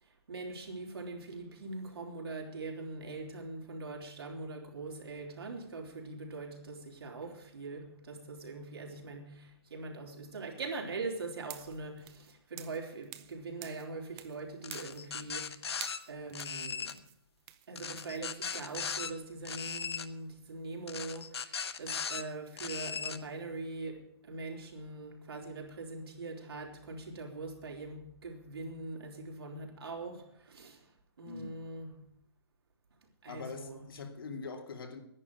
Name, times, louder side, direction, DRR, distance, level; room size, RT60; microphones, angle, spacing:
voice 1, 0.0-15.8 16.1-17.0 17.7-30.9 31.2-32.1 33.2-33.9, right 3 dB, 80° right, 3.9 m, -42 dB
sound 1, 11.4-13.4 13.6-14.4 14.7-15.5 15.8-18.8, right 15 dB, 15° right, 0.5 m, -49 dB
sound 2, 14.6-16.0 16.3-16.9 17.8-19.1 19.4-20.1 20.9-22.2 22.6-23.2, left 6 dB, 90° left, 1.3 m, -38 dB
voice 2, 33.3-35.0, left 4 dB, 60° left, 2.8 m, -43 dB
11.0 x 10.5 x 9.4 m
hypercardioid pair, 170°, 13 cm